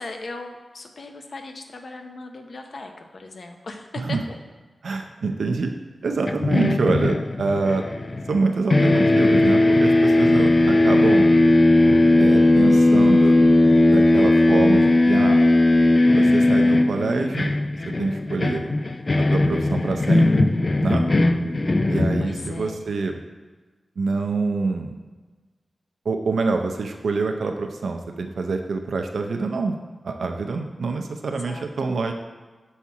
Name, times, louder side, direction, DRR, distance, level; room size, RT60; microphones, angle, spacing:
voice 1, 0.0-4.2 22.2-22.9 31.5-31.6, left 3 dB, 60° left, 4 dB, 0.7 m, -38 dB
voice 2, 4.8-5.7 6.0-7.9 8.3-11.3 12.2-13.4 13.9-15.4 16.1-17.5 17.8-18.7 19.3-20.5 20.8-21.0 21.9-23.2 24.0-25.0 26.0-29.7 30.0-32.1, right 4 dB, 85° right, 4 dB, 0.5 m, -26 dB
sound 1, 6.3-8.4 8.7-22.7, left 2 dB, 35° left, 0.3 m, -18 dB
7.0 x 4.2 x 4.7 m, 1.3 s
wide cardioid pair, 120°, 0 cm